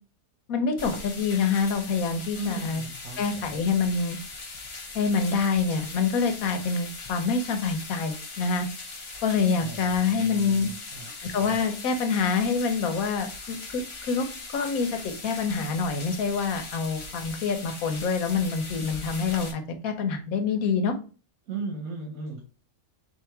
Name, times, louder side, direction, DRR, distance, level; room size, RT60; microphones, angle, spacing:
voice 1, 0.5-2.8 3.2-4.2 4.9-8.7 9.2-10.7 11.2-14.3 14.5-21.0, left 5 dB, 90° left, 7 dB, 1.2 m, -26 dB
sound 1, 0.8-19.5, left 3 dB, 35° left, 0.5 m, -40 dB
voice 2, 2.3-3.5 9.6-11.1 21.5-22.4, right 3 dB, 85° right, 1 dB, 1.5 m, -37 dB
3.8 x 2.8 x 4.4 m, 0.36 s
omnidirectional pair, 1.5 m